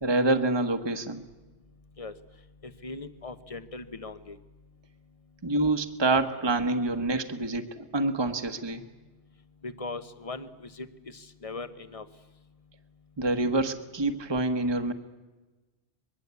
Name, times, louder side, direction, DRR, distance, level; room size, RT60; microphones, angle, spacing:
voice 1, 0.0-1.2 5.4-8.8 13.2-14.9, right 2 dB, 25° right, 7 dB, 1.3 m, -27 dB
voice 2, 2.6-4.4 9.6-12.0, left 3 dB, 30° left, 11 dB, 1.1 m, -39 dB
24.0 x 21.5 x 8.3 m, 1.2 s
omnidirectional pair, 1.2 m